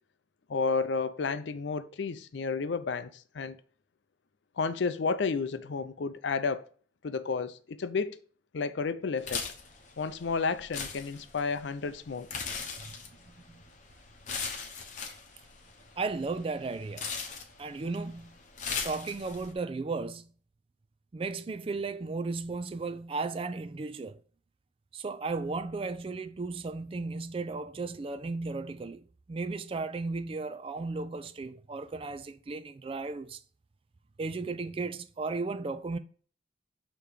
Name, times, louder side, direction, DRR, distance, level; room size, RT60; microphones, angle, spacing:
voice 1, 0.5-3.6 4.6-6.6 7.0-8.2 8.5-9.5 10.0-12.3, left 4 dB, 70° left, 0.5 m, -31 dB
sound 1, 9.2-19.5, left 5 dB, 40° left, 0.9 m, -40 dB
voice 2, 13.3-13.6 16.0-17.1 17.6-18.4 18.8-20.3 21.1-24.2 24.9-33.4 34.2-36.0, right 3 dB, 30° right, 0.3 m, -35 dB
6.7 x 3.0 x 5.0 m
head